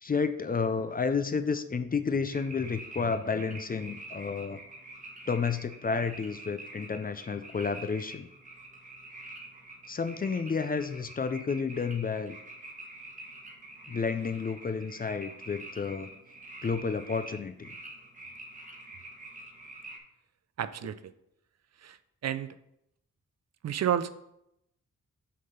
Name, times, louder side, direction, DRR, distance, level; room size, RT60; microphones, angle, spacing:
voice 1, 0.0-4.6 5.3-8.3 9.9-12.4 13.9-16.1 16.6-17.8, left 5 dB, 30° left, 10 dB, 0.4 m, -31 dB
sound 1, 2.3-20.0, right 2 dB, 25° right, 1.1 m, -47 dB
voice 2, 20.6-21.1 21.8-22.6 23.6-24.1, right 10 dB, 55° right, 13 dB, 0.4 m, -31 dB
6.4 x 3.6 x 5.7 m, 0.80 s
wide cardioid pair, 110°, 31 cm